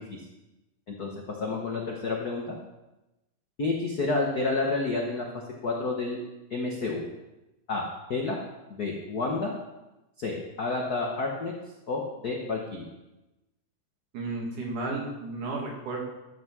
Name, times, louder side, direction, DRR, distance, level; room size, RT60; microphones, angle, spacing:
voice 1, 0.9-2.5 3.6-5.3 5.6-6.2 6.5-7.0 7.7-8.4 8.7-9.5 10.2-11.5 11.9-12.9, left 3 dB, 75° left, -1 dB, 0.8 m, -30 dB
voice 2, 14.1-16.0, right 2 dB, 75° right, -1 dB, 3.7 m, -33 dB
13.0 x 5.6 x 6.1 m, 0.99 s
omnidirectional pair, 3.7 m